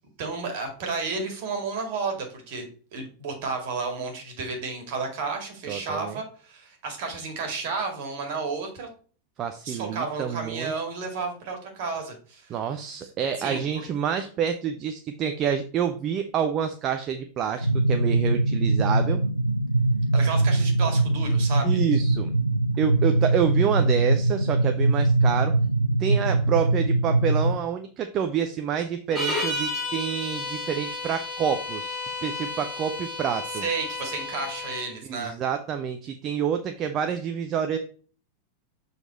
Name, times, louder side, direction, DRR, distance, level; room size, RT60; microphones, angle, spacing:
voice 1, 0.2-2.7 2.9-8.9 9.6-12.6 13.0-13.1 13.4-13.6 20.1-21.8 33.6-35.3, right 4 dB, 50° right, 3 dB, 2.1 m, -32 dB
voice 2, 5.7-6.2 9.4-10.7 12.5-19.2 21.6-22.3 22.8-25.5 26.0-33.6 35.1-37.8, right 8 dB, 30° right, 6 dB, 0.6 m, -28 dB
sound 1, 17.6-27.6, right 2 dB, 90° left, 0.4 m, -22 dB
sound 2, 29.1-34.9, left 2 dB, 10° left, 3.6 m, -32 dB
6.9 x 4.1 x 4.2 m, 0.41 s
figure-of-eight pair, 90°, 0 cm